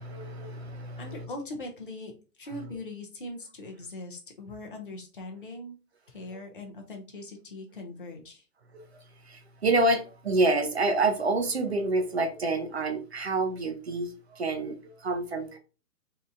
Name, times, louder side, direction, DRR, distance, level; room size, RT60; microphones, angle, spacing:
voice 1, 0.0-1.3 6.3-6.4 8.7-8.9 9.2-15.6, right 2 dB, 45° right, 0.5 m, -28 dB
voice 2, 1.0-2.1 2.4-5.7 6.1-8.4, left 2 dB, 35° left, 0.5 m, -41 dB
3.4 x 2.8 x 2.5 m
hypercardioid pair, 170°, 46 cm